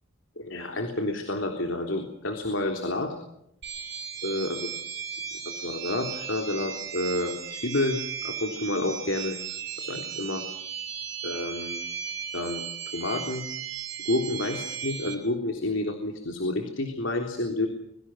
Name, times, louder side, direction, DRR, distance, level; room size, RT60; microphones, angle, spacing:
voice 1, 0.4-3.2 4.2-4.7 5.5-9.4 9.8-10.5 11.2-11.8 12.3-12.6 12.9-13.4 14.1-17.7, left 2 dB, 70° left, 4 dB, 3.6 m, -29 dB
sound 1, 3.6-15.2, right 8 dB, 60° right, 6.4 m, -36 dB
26.0 x 24.0 x 6.3 m, 0.76 s
head